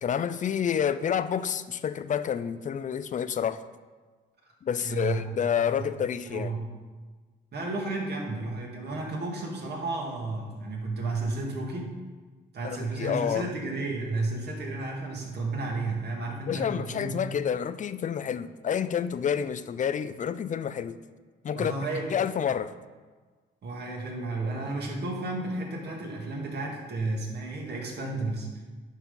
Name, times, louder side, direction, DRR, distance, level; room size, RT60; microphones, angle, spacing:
voice 1, 0.0-3.6 4.6-6.5 12.6-13.5 16.5-21.0 21.4-21.7 22.1-22.7, left 8 dB, 40° left, 13 dB, 0.4 m, -29 dB
voice 2, 4.8-5.3 6.2-6.7 7.5-11.9 12.5-17.1 21.5-22.1 23.6-28.5, right 2 dB, 55° right, -1 dB, 2.0 m, -32 dB
10.0 x 4.1 x 5.4 m, 1.4 s
cardioid pair, 90°, 20 cm